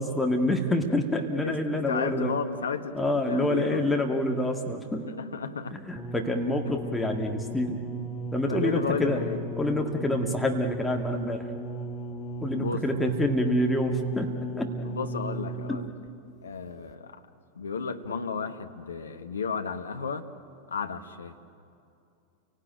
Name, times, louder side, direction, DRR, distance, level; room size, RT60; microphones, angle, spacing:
voice 1, 0.0-2.3 2.9-5.1 5.7-7.8 8.3-9.2 9.6-11.5 12.4-14.7, left 1 dB, 5° left, 2 dB, 2.0 m, -27 dB
voice 2, 1.4-3.8 5.1-5.8 6.8-6.9 8.4-9.4 10.1-10.2 12.5-13.1 14.8-15.9 16.4-17.2 17.5-20.3 20.7-21.3, left 5 dB, 70° left, 8 dB, 1.3 m, -33 dB
sound 1, 6.0-16.1 16.9-17.0, right 1 dB, 25° left, 1.4 m, -36 dB
29.5 x 18.5 x 9.0 m, 2.6 s
figure-of-eight pair, 90°, 0 cm